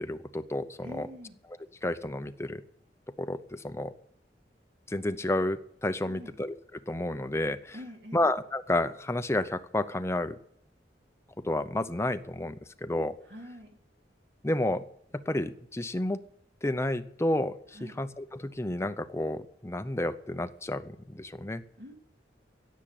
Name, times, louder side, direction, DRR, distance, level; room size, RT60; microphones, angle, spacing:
voice 1, 0.0-1.1 1.8-2.6 3.2-3.9 4.9-7.8 8.1-10.4 11.4-13.2 14.4-14.9 15.1-16.2 16.6-21.6, left 1 dB, 15° left, 10 dB, 0.7 m, -31 dB
voice 2, 0.8-1.4 6.0-6.3 7.7-8.3 13.2-13.8 17.7-18.0 21.8-21.9, left 1 dB, 65° right, 2 dB, 3.0 m, -45 dB
16.5 x 7.4 x 8.8 m, 0.71 s
head